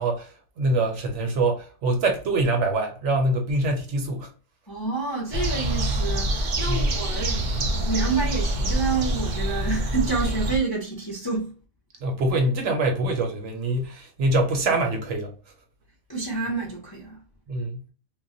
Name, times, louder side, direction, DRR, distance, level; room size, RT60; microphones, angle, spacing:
voice 1, 0.0-4.3 6.7-6.9 12.0-15.3 17.5-17.8, right 2 dB, 65° right, 0.9 m, -24 dB
voice 2, 4.7-11.5 16.1-17.2, right 4 dB, 30° left, 0.4 m, -28 dB
sound 1, 5.3-10.6, right 1 dB, 85° right, 0.4 m, -25 dB
2.3 x 2.1 x 3.7 m
omnidirectional pair, 1.4 m